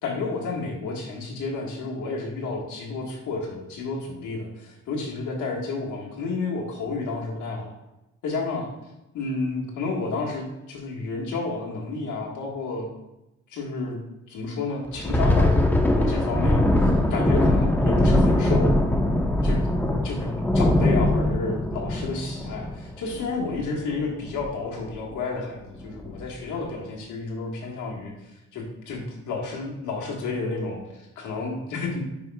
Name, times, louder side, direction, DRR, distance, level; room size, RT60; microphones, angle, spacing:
voice 1, 0.0-7.7 8.2-8.7 9.1-12.9 13.5-14.0 14.3-16.7 17.1-18.8 19.4-19.7 20.0-28.1 28.5-32.0, left 3 dB, 75° left, -1 dB, 1.7 m, -31 dB
Thunder, 14.9-23.9 24.3-24.5 24.9-25.1 25.7-26.2, left 1 dB, 5° left, 0.9 m, -21 dB
9.5 x 5.1 x 2.4 m, 0.94 s
cardioid pair, 90°, 30 cm